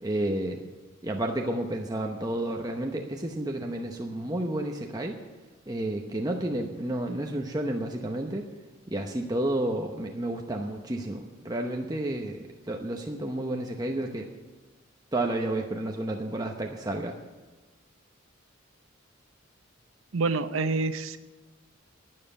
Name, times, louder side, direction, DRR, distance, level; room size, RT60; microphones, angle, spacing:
voice 1, 0.0-0.6 1.0-5.2 5.7-8.5 8.9-14.3 15.1-17.2, right 1 dB, 20° right, 2 dB, 0.9 m, -31 dB
voice 2, 20.1-21.2, right 3 dB, 85° right, 11 dB, 0.8 m, -27 dB
12.0 x 9.4 x 8.6 m, 1.2 s
head